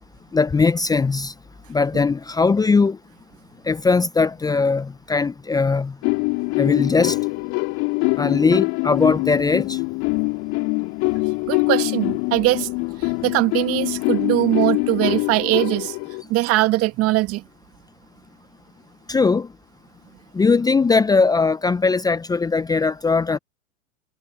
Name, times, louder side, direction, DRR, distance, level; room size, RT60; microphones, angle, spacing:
voice 1, 0.3-1.3 1.7-3.0 3.7-5.9 6.6-7.2 8.2-9.8 19.1-19.5 20.3-23.4, left 4 dB, 10° left, 0.9 m, -19 dB
sound 1, 6.0-16.2, left 29 dB, 45° left, 3.8 m, -24 dB
voice 2, 11.5-12.7 13.0-16.0 16.3-17.4, right 18 dB, 35° right, 2.3 m, -21 dB
hypercardioid pair, 100°, 38 cm